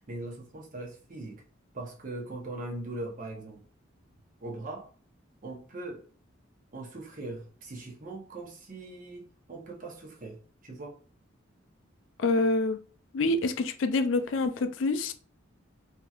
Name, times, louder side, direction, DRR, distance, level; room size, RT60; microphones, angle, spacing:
voice 1, 0.1-1.4 1.7-3.6 4.4-4.9 5.4-6.0 6.7-11.0, right 2 dB, 45° right, 0.8 m, -40 dB
voice 2, 12.2-12.8 13.1-15.1, left 2 dB, 75° left, 0.4 m, -26 dB
3.0 x 2.7 x 2.4 m
head